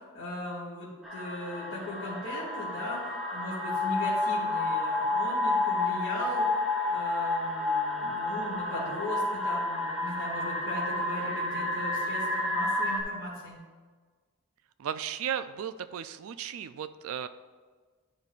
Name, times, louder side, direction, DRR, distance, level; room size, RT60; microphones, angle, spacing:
voice 1, 0.0-6.6 6.9-13.6, left 1 dB, 60° left, -8 dB, 2.1 m, -38 dB
sound 1, 1.0-13.0, left 2 dB, ahead, 0.7 m, -30 dB
voice 2, 14.8-17.3, right 8 dB, 65° right, 12 dB, 0.3 m, -35 dB
10.5 x 5.3 x 2.4 m, 1.5 s
head